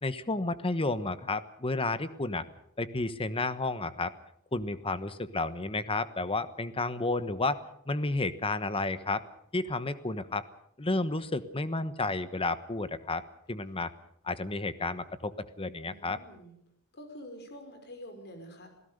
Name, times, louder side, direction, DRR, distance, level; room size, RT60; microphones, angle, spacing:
voice 1, 0.0-2.5 2.8-4.1 4.5-7.6 7.9-9.2 9.5-10.4 10.8-13.2 13.5-13.9 14.2-16.2, left 2 dB, 25° left, 13 dB, 1.1 m, -31 dB
voice 2, 15.8-16.6 16.9-18.7, equal, 50° left, 6 dB, 5.5 m, -47 dB
27.5 x 17.0 x 6.7 m, 0.75 s
head